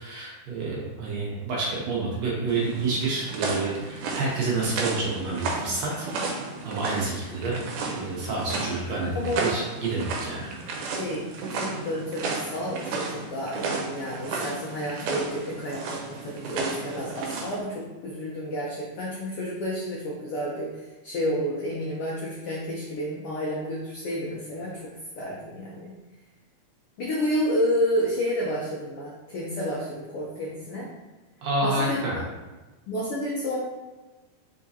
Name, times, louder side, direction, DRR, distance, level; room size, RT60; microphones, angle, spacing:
voice 1, 0.0-6.1 6.6-7.6 7.9-10.5 31.4-32.2, right 3 dB, 70° right, -4 dB, 1.9 m, -28 dB
sound 1, 2.5-17.6, right 3 dB, 90° right, 2.1 m, -33 dB
voice 2, 9.1-9.5 10.9-11.2 11.5-20.7 21.0-24.7 25.1-25.9 27.0-30.9 31.6-32.2 32.9-33.6, equal, 85° left, -4 dB, 1.2 m, -30 dB
4.8 x 3.7 x 2.7 m, 1.2 s
omnidirectional pair, 3.5 m